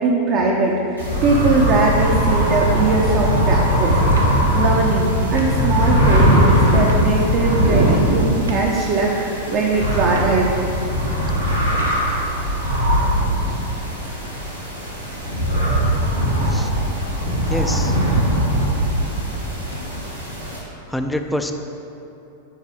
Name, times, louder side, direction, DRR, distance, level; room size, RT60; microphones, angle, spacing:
voice 1, 0.0-10.6, right 3 dB, 40° right, -2 dB, 0.7 m, -20 dB
sound 1, 1.0-20.6, equal, 90° right, 1.2 m, -20 dB
sound 2, 4.1-4.4 5.3-5.6 6.8-7.1 8.4-8.7 10.0-10.4 11.7-12.1, right 2 dB, 75° right, 0.7 m, -34 dB
voice 2, 17.5-18.0 20.9-21.5, left 1 dB, 5° left, 5 dB, 0.4 m, -25 dB
9.8 x 4.0 x 3.6 m, 3.0 s
figure-of-eight pair, 90°, 0 cm